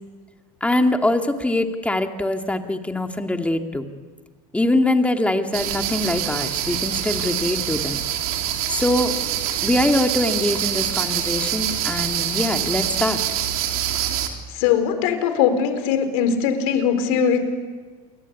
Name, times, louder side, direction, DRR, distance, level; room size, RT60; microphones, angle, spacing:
voice 1, 0.6-3.8 4.5-8.1 8.7-9.1 9.6-13.2, left 1 dB, 5° left, 5 dB, 2.4 m, -23 dB
sound 1, 5.5-14.3, right 11 dB, 80° right, 3.6 m, -25 dB
voice 2, 14.5-17.4, left 7 dB, 70° left, 8 dB, 4.6 m, -20 dB
28.5 x 23.5 x 8.5 m, 1.4 s
supercardioid pair, 105°, 19 cm